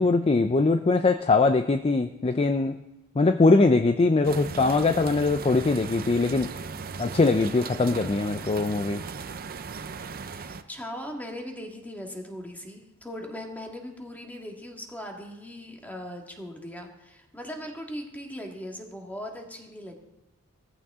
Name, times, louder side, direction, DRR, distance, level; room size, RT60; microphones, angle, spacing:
voice 1, 0.0-2.8 3.2-6.5 7.0-9.0, left 3 dB, 25° left, 9 dB, 0.4 m, -22 dB
sound 1, 4.2-10.6, right 5 dB, 40° right, 0.6 m, -37 dB
voice 2, 10.3-19.9, equal, 10° left, 1 dB, 1.9 m, -39 dB
17.0 x 14.5 x 3.7 m, 0.92 s
head